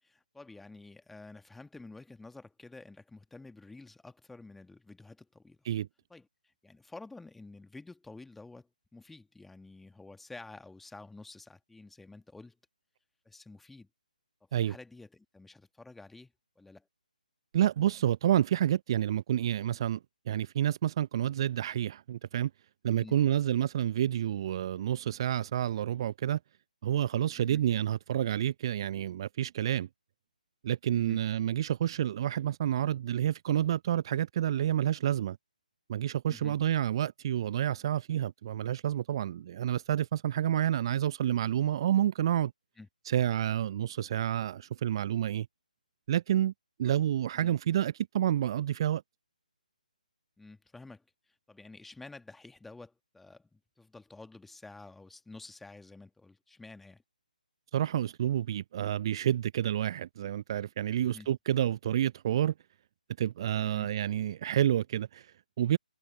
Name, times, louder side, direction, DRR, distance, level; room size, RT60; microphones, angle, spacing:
voice 1, 0.0-5.6 6.1-12.6 13.3-13.9 14.5-16.9 22.9-23.2 27.4-27.6 30.9-31.2 36.3-36.6 42.8-42.9 46.8-46.9 47.3-47.5 50.4-57.0 61.0-61.3 63.6-63.9, left 3 dB, 5° left, 1.9 m, -50 dB
voice 2, 17.5-20.0 20.3-22.5 22.8-26.4 26.8-29.9 30.6-35.4 35.9-42.5 43.1-45.5 46.1-46.5 46.8-49.0 57.7-62.5 63.2-65.8, right 11 dB, 35° right, 0.6 m, -29 dB
figure-of-eight pair, 140°, 5 cm